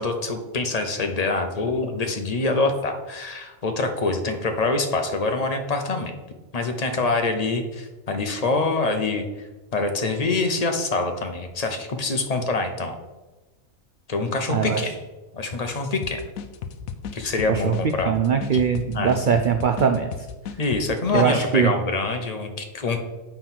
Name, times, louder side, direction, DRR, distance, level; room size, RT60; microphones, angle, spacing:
voice 1, 0.0-6.1 6.5-9.3 9.7-13.0 14.1-14.9 15.3-16.2 17.1-18.1 18.9-19.1 20.6-23.0, left 3 dB, 35° left, 5 dB, 0.8 m, -25 dB
voice 2, 14.5-14.9 17.5-17.7 18.0-20.3 21.1-21.7, right 7 dB, 65° right, 6 dB, 0.4 m, -21 dB
sound 1, 16.0-21.3, left 7 dB, 85° left, 1.1 m, -34 dB
7.5 x 4.6 x 5.8 m, 1.2 s
omnidirectional pair, 1.4 m